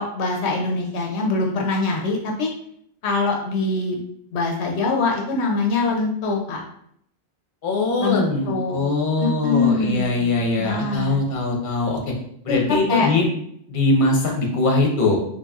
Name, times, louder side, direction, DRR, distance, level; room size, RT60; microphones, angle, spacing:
voice 1, 0.0-2.5 3.0-4.0 4.3-6.6 8.0-8.8 9.2-11.2 12.5-13.1, left 3 dB, 80° left, 1 dB, 0.9 m, -23 dB
voice 2, 7.6-12.1 12.4-13.3 13.7-15.2, left 2 dB, 50° left, 0 dB, 0.9 m, -21 dB
3.9 x 3.3 x 2.3 m, 0.69 s
omnidirectional pair, 1.1 m